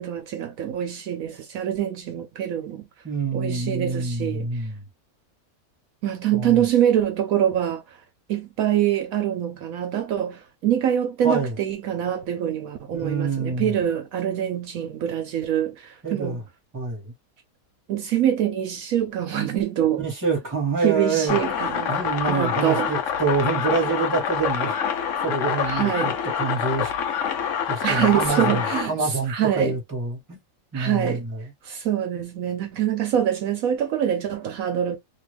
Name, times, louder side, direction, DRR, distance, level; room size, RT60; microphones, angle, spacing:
voice 1, 0.0-2.8 3.3-4.5 6.0-7.8 8.3-16.4 17.9-20.0 20.8-22.0 22.3-22.9 25.6-26.2 27.8-29.7 30.7-31.2 31.6-35.0, right 10 dB, 70° right, 1.0 m, -24 dB
voice 2, 3.0-4.8 6.3-6.6 11.2-11.5 12.9-13.7 16.0-16.4 16.7-17.1 20.0-24.8 25.2-26.1 26.4-26.9 27.7-30.4 30.7-31.4, right 4 dB, 15° right, 1.2 m, -26 dB
sound 1, 21.3-28.9, left 8 dB, 65° left, 0.9 m, -26 dB
2.7 x 2.4 x 3.2 m
omnidirectional pair, 1.6 m